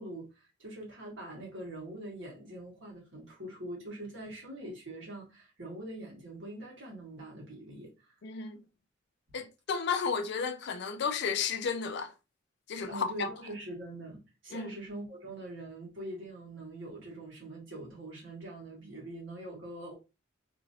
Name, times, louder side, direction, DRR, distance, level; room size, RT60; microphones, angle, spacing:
voice 1, 0.0-8.2 12.8-19.9, right 1 dB, 65° right, 1.5 m, -43 dB
voice 2, 8.2-8.6 9.3-12.1 12.7-13.3 14.5-14.7, left 5 dB, 55° left, 0.4 m, -33 dB
2.9 x 2.6 x 2.6 m
head